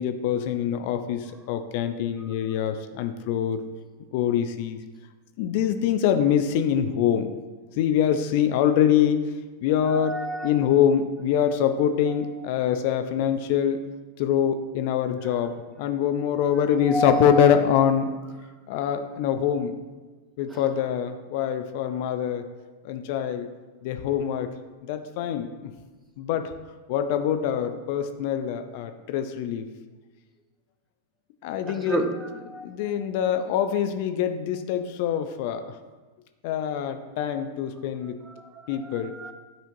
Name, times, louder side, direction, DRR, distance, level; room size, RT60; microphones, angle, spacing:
voice 1, 0.0-3.6 4.1-4.8 5.4-7.3 7.8-9.2 9.6-13.8 14.2-18.1 18.7-19.8 20.4-22.4 22.8-23.5 23.8-24.5 24.8-25.7 26.2-26.5 26.9-29.6 31.4-32.0 32.6-35.8 36.4-38.2 38.7-39.1, left 9 dB, 55° left, 8 dB, 0.4 m, -24 dB
voice 2, 9.9-10.5 12.1-12.2 16.8-17.7 20.5-20.6 31.7-32.9 38.2-39.3, right 1 dB, 15° right, 6 dB, 0.6 m, -31 dB
9.3 x 4.3 x 2.7 m, 1.3 s
figure-of-eight pair, 95°, 0 cm